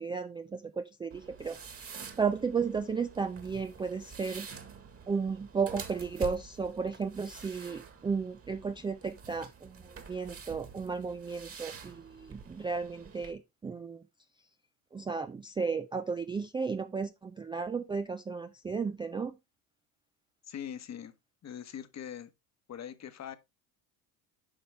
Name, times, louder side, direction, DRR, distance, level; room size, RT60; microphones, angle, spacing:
voice 1, 0.0-4.5 5.1-14.0 14.9-19.3, right 5 dB, 10° right, 0.3 m, -34 dB
sound 1, 1.1-13.3, right 6 dB, 30° right, 1.7 m, -48 dB
voice 2, 20.5-21.1 21.4-22.3 22.7-23.4, left 9 dB, 35° left, 1.1 m, -42 dB
8.9 x 5.2 x 3.4 m
supercardioid pair, 85°, 45 cm